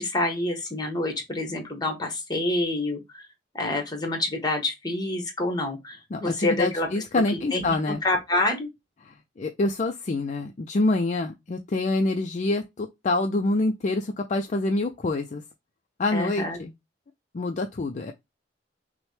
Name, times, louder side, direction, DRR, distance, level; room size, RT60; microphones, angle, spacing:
voice 1, 0.0-3.0 3.5-6.9 7.3-7.7 8.0-8.7 16.1-16.6, left 2 dB, 25° left, 1.2 m, -27 dB
voice 2, 6.1-8.0 9.0-15.4 16.0-16.7 17.3-18.1, left 2 dB, 45° left, 0.4 m, -26 dB
6.0 x 2.1 x 3.2 m
head